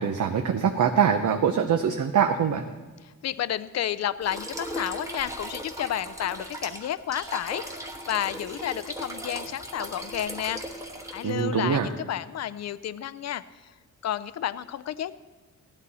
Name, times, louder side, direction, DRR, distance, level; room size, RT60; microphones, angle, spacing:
voice 1, 0.0-2.6 11.2-11.9, right 7 dB, 65° right, 5 dB, 0.8 m, -23 dB
voice 2, 3.0-10.6 11.1-13.4 14.0-15.1, left 11 dB, 55° left, 15 dB, 0.5 m, -31 dB
sound 1, 4.2-11.4, right 1 dB, 10° right, 1.2 m, -38 dB
16.0 x 11.0 x 4.1 m, 1.3 s
wide cardioid pair, 150°, 33 cm